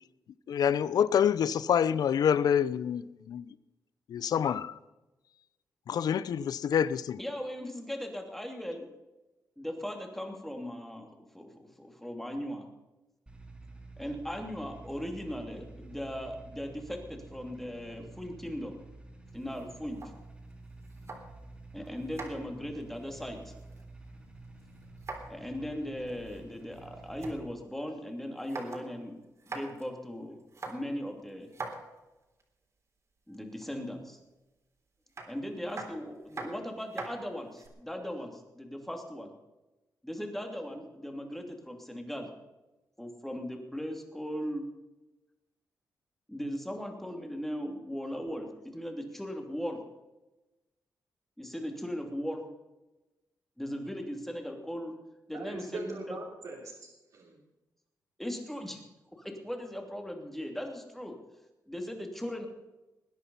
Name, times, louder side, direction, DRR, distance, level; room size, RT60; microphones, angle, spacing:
voice 1, 0.5-3.4 4.1-4.7 5.9-7.2, left 8 dB, 70° left, 0.6 m, -27 dB
voice 2, 7.2-8.9 9.6-12.7 14.0-18.8 19.3-20.0 21.7-23.5 25.3-29.2 29.4-30.4 30.7-31.5 33.3-34.2 35.3-39.3 40.0-42.3 43.0-44.7 46.3-49.8 51.4-52.5 53.6-54.9 55.3-56.2 58.2-58.8 59.1-61.2 61.7-62.5, equal, 5° left, 2.8 m, -38 dB
sound 1, 13.3-27.4, right 2 dB, 15° right, 3.3 m, -50 dB
sound 2, 19.3-21.5 21.9-24.1 24.4-25.5 25.7-25.8 26.1-27.4 27.8-27.9 28.2-28.9 29.2-29.9 30.4-32.4 33.3-33.9 35.1-37.7, right 3 dB, 45° right, 3.7 m, -44 dB
voice 3, 55.3-57.4, right 3 dB, 65° right, 3.3 m, -42 dB
20.5 x 10.0 x 5.5 m
cardioid pair, 100°, 7 cm